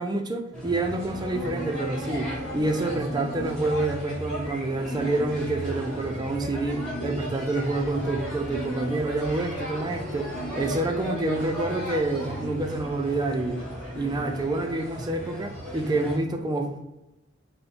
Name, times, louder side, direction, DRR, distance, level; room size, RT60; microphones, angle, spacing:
voice 1, 0.0-13.6 13.9-16.8, right 2 dB, 20° right, 5 dB, 0.4 m, -28 dB
sound 1, 0.5-16.2, right 1 dB, 5° left, 1.3 m, -34 dB
5.2 x 2.1 x 4.3 m, 0.95 s
head